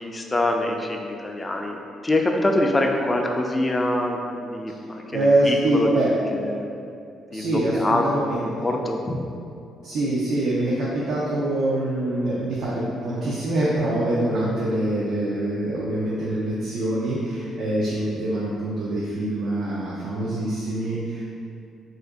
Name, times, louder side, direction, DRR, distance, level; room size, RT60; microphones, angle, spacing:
voice 1, 0.0-1.8 2.0-5.9 6.3-6.7 7.3-9.2, left 1 dB, 20° left, 2 dB, 0.3 m, -25 dB
voice 2, 5.1-6.1 7.3-8.5 9.8-21.3, right 1 dB, 75° right, -6 dB, 0.4 m, -24 dB
2.8 x 2.5 x 3.4 m, 2.5 s
cardioid pair, 90°, 0 cm